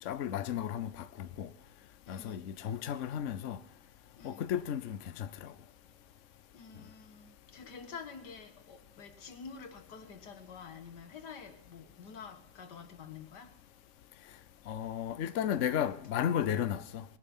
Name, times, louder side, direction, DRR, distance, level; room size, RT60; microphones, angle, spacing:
voice 1, 0.0-1.5 2.1-3.6 4.2-5.5 14.7-17.0, left 9 dB, 55° left, 0.9 m, -34 dB
voice 2, 2.1-2.4 4.2-4.4 6.5-13.5, left 6 dB, 80° left, 2.1 m, -48 dB
20.0 x 11.5 x 5.5 m
omnidirectional pair, 1.8 m